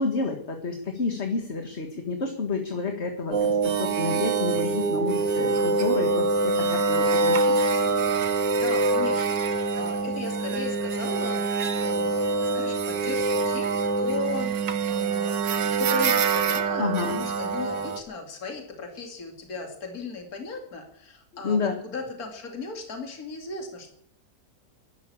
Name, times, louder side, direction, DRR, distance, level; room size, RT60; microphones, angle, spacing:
voice 1, 0.0-7.5 16.8-17.2 21.4-21.8, left 4 dB, 40° left, 4 dB, 1.9 m, -29 dB
sound 1, 3.3-18.0, right 4 dB, 90° right, 2.0 m, -25 dB
voice 2, 8.3-15.4 15.7-23.9, left 4 dB, 55° left, 3 dB, 2.9 m, -37 dB
12.0 x 12.0 x 8.3 m, 0.72 s
omnidirectional pair, 1.9 m